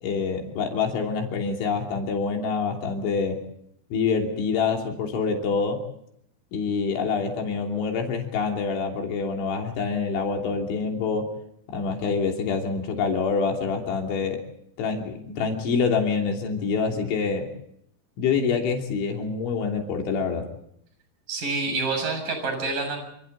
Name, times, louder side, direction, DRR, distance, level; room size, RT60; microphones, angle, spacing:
voice 1, 0.0-3.4 3.9-5.8 6.5-11.3 11.7-14.5 14.8-17.5 18.2-20.5, left 5 dB, 80° left, 1 dB, 5.4 m, -26 dB
voice 2, 21.3-23.0, right 3 dB, 45° right, 6 dB, 8.5 m, -27 dB
28.0 x 27.5 x 4.1 m, 0.74 s
omnidirectional pair, 5.3 m